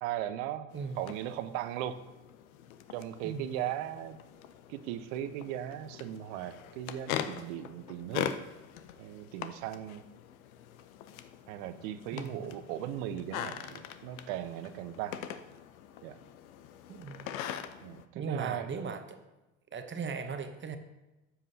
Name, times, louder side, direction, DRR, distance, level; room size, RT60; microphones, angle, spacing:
voice 1, 0.0-0.7 1.0-2.0 2.9-4.2 4.7-8.3 9.0-10.0 11.5-15.2 16.0-16.2 17.8-18.7, right 11 dB, 70° right, 12 dB, 0.8 m, -38 dB
sound 1, 0.7-18.1, left 10 dB, 90° left, 0.7 m, -42 dB
voice 2, 12.1-12.5 16.9-17.3 18.1-19.2 19.7-20.8, right 5 dB, 30° right, 8 dB, 0.9 m, -38 dB
12.5 x 7.4 x 2.8 m, 1.0 s
supercardioid pair, 90°, 40 cm